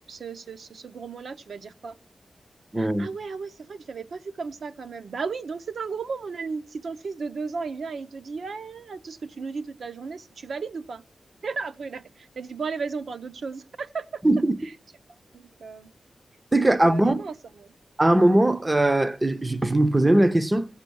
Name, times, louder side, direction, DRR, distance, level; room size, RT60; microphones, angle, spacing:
voice 1, 0.1-2.0 2.8-11.0 11.4-14.2 14.6-14.7 15.3-15.9 16.6-17.7, right 5 dB, 60° right, 0.7 m, -35 dB
voice 2, 2.7-3.1 14.2-14.6 16.5-17.2 18.0-20.7, right 1 dB, 15° right, 0.6 m, -20 dB
16.0 x 8.2 x 6.9 m
wide cardioid pair, 180°, 0 cm